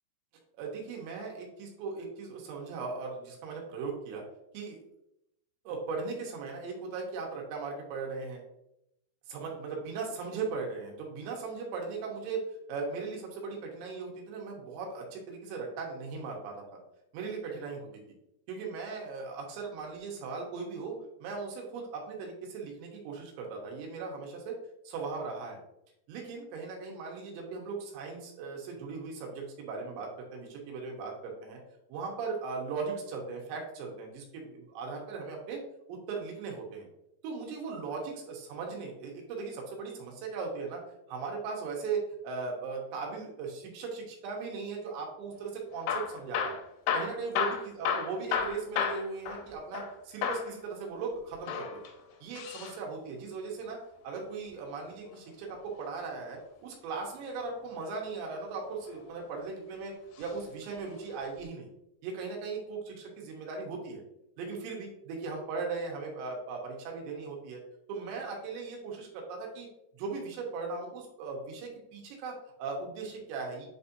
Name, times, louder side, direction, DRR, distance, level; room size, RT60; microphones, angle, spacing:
voice 1, 0.6-4.2 4.5-4.8 5.6-8.4 9.3-12.4 12.7-16.8 17.1-17.9 18.5-24.5 24.8-25.6 26.1-31.6 31.9-35.6 35.9-36.9 37.2-40.8 41.1-46.6 46.9-51.8 52.2-53.8 54.0-59.9 60.2-61.7 62.0-64.0 64.4-67.6 67.9-69.7 69.9-73.7, right 4 dB, 75° right, 0 dB, 3.2 m, -38 dB
Hammer / Drill, 45.7-49.9 50.2-50.5 51.3-52.8 54.5-55.8 57.5-57.9 58.6-59.5 60.2-60.4 60.7-60.8 61.4-61.5, left 7 dB, 85° left, 3.0 m, -33 dB
8.5 x 4.2 x 2.7 m, 0.82 s
omnidirectional pair, 5.4 m